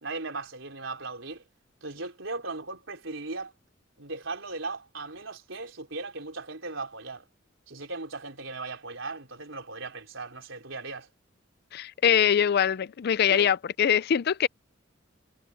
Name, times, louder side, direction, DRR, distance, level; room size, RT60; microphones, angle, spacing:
voice 1, 0.0-1.4 1.8-3.5 4.0-7.3 7.7-11.1 13.3-13.5, right 3 dB, 75° right, 4.2 m, -37 dB
voice 2, 11.7-14.5, left 8 dB, 55° left, 0.4 m, -23 dB
head